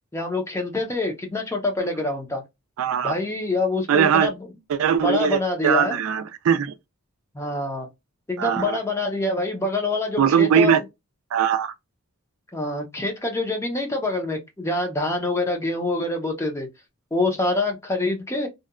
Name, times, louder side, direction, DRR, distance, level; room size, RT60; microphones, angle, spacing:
voice 1, 0.1-2.4 3.0-4.3 5.0-6.0 7.3-7.9 8.3-10.8 12.5-16.7 17.1-18.5, left 2 dB, 10° left, 0.5 m, -25 dB
voice 2, 2.8-3.2 3.9-4.3 4.7-6.7 8.4-8.8 10.2-10.8 11.3-11.7, right 8 dB, 75° right, 0.3 m, -20 dB
2.8 x 2.2 x 2.3 m
head